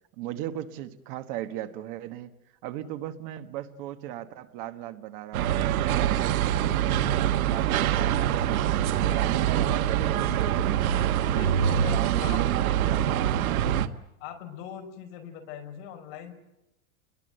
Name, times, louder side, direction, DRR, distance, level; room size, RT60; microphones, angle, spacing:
voice 1, 0.2-2.3 2.6-8.3 8.7-11.0 11.3-11.5 11.9-13.5, right 13 dB, 40° right, 9 dB, 1.3 m, -37 dB
sound 1, 5.3-13.9, right 10 dB, 85° right, 1.5 m, -24 dB
voice 2, 8.7-9.3 11.3-12.6 13.1-13.2 14.2-16.3, left 8 dB, 45° left, 3 dB, 5.3 m, -42 dB
29.0 x 21.5 x 7.9 m, 0.90 s
supercardioid pair, 175°, 41 cm